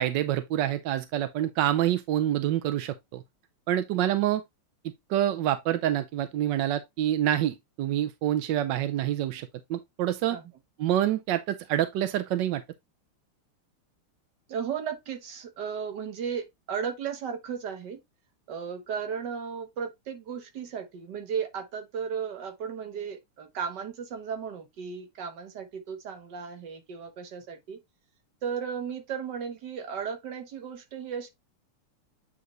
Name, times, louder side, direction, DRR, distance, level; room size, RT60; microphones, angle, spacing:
voice 1, 0.0-3.2 3.7-4.4 5.1-10.4 10.8-12.6, right 12 dB, 75° right, 1.1 m, -27 dB
voice 2, 14.5-18.0 18.5-27.8 28.4-31.3, right 7 dB, 55° right, 1.7 m, -35 dB
8.6 x 3.8 x 3.1 m
omnidirectional pair, 2.4 m